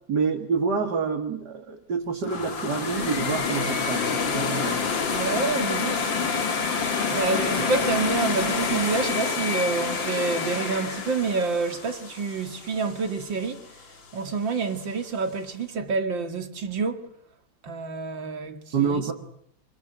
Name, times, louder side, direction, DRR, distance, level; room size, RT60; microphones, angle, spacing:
voice 1, 0.1-4.8 7.6-7.7 18.7-19.1, right 5 dB, 60° right, 3.0 m, -27 dB
sound 1, 2.2-13.2, left 5 dB, 85° left, 2.9 m, -27 dB
voice 2, 5.1-6.1 7.1-13.6 14.1-17.1 17.6-18.9, right 4 dB, 85° right, 2.9 m, -28 dB
26.0 x 24.5 x 9.4 m
omnidirectional pair, 2.0 m